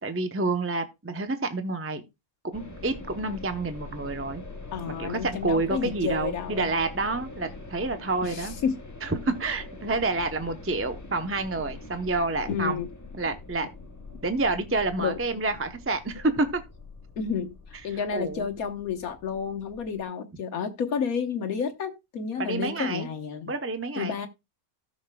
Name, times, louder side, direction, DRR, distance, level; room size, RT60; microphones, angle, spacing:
voice 1, 0.0-2.0 2.4-4.4 4.9-8.5 9.0-12.8 13.1-13.7 14.2-16.6 18.1-18.5 22.4-23.1 23.5-24.2, right 3 dB, 15° right, 0.6 m, -28 dB
sound 1, 2.5-20.0, left 2 dB, 15° left, 0.9 m, -43 dB
voice 2, 4.7-6.7 8.2-8.8 12.5-12.9 15.0-15.2 17.2-17.6 17.8-23.5 24.0-24.3, left 6 dB, 75° left, 1.5 m, -30 dB
17.5 x 6.5 x 2.3 m
omnidirectional pair, 1.5 m